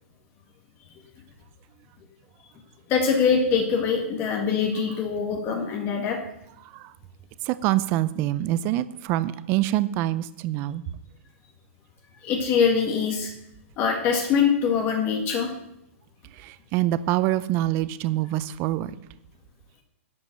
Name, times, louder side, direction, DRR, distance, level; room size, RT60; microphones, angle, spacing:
voice 1, 2.9-6.2 12.2-13.3 13.8-15.6, left 6 dB, 30° left, 2 dB, 1.8 m, -23 dB
voice 2, 6.6-6.9 7.4-10.8 16.3-18.9, right 14 dB, 35° right, 15 dB, 0.5 m, -25 dB
11.0 x 5.3 x 7.7 m, 0.80 s
hypercardioid pair, 140°, 7 cm